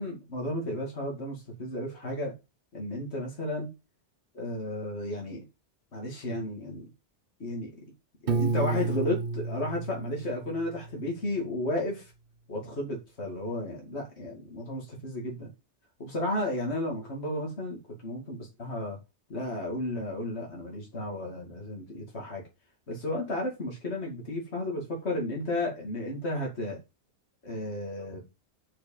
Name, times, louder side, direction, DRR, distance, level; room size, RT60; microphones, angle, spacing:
voice 1, 0.0-2.3 2.7-3.7 4.3-5.4 5.9-6.9 7.4-7.7 8.3-12.1 12.5-15.5 16.0-19.0 19.3-22.4 22.9-26.8 27.4-28.3, left 1 dB, 65° left, 2.8 m, -33 dB
Piano, 8.3-11.2, right 4 dB, 55° right, 1.0 m, -31 dB
6.4 x 6.0 x 7.0 m
omnidirectional pair, 1.2 m